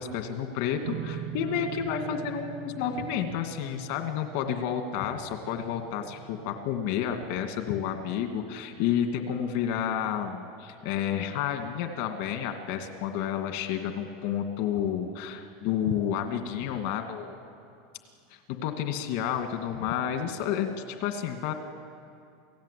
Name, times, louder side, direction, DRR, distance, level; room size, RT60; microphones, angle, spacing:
voice 1, 0.0-17.4 18.3-21.5, left 9 dB, 65° left, 5 dB, 2.3 m, -30 dB
sound 1, 0.8-13.4, right 8 dB, 85° right, 2.2 m, -44 dB
28.5 x 17.5 x 8.5 m, 2.5 s
supercardioid pair, 130°, 0 cm